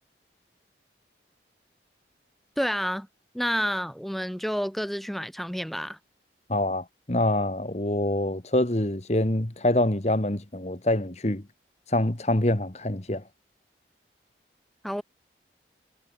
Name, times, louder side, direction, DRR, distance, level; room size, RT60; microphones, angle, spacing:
voice 1, 2.6-3.1 3.3-6.0 14.8-15.0, equal, ahead, 1.6 m, -29 dB
voice 2, 6.5-11.4 11.9-13.2, left 1 dB, 35° left, 1.7 m, -25 dB
head